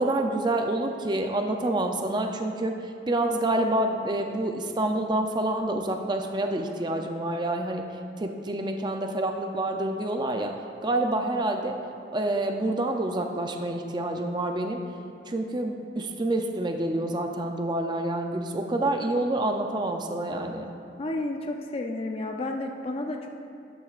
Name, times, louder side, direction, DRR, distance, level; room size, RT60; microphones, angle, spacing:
voice 1, 0.0-2.7 3.1-7.8 8.2-10.5 10.8-11.7 12.1-14.8 15.3-20.7, right 1 dB, 25° right, 3 dB, 0.5 m, -27 dB
voice 2, 21.0-23.3, left 2 dB, 30° left, 3 dB, 0.5 m, -31 dB
12.5 x 9.0 x 2.4 m, 2.4 s
head